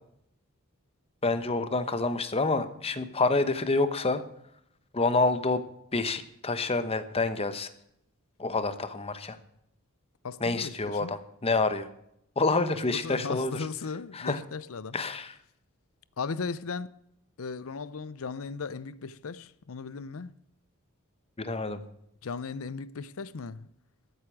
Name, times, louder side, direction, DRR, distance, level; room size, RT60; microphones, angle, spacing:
voice 1, 1.2-4.2 4.9-5.6 5.9-7.7 8.4-9.4 10.4-11.9 12.4-13.6 14.1-14.4 14.9-15.3 21.4-21.8, left 3 dB, 25° left, 1.0 m, -27 dB
voice 2, 10.2-11.1 12.9-15.0 16.2-16.9 17.4-20.3 22.2-23.7, left 4 dB, 70° left, 0.6 m, -37 dB
13.5 x 8.1 x 6.1 m
head